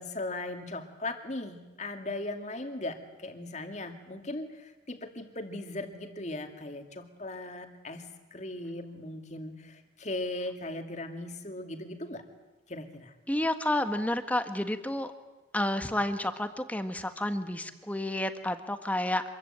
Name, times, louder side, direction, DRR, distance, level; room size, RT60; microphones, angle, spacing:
voice 1, 0.0-12.2 12.7-13.1, left 2 dB, 40° left, 6 dB, 2.4 m, -38 dB
voice 2, 13.3-15.1 15.5-19.2, left 1 dB, 10° left, 8 dB, 1.4 m, -30 dB
26.5 x 22.0 x 8.9 m, 1.1 s
head